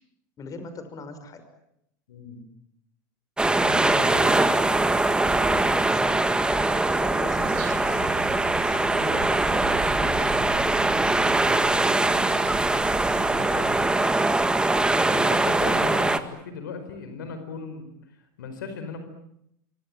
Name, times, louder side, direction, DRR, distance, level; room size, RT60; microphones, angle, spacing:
voice 1, 0.4-1.4 4.1-5.6 5.9-10.3, left 3 dB, 35° left, 9 dB, 5.9 m, -40 dB
voice 2, 2.1-2.4 3.6-4.3 11.0-11.3 13.2-13.9 15.1-17.8 18.4-19.0, left 5 dB, 85° left, 8 dB, 4.9 m, -37 dB
sound 1, 3.4-16.2, right 2 dB, 10° right, 1.9 m, -22 dB
sound 2, 7.3-13.9, right 9 dB, 55° right, 4.9 m, -39 dB
26.5 x 24.0 x 8.9 m, 0.77 s
hypercardioid pair, 100°, 10 cm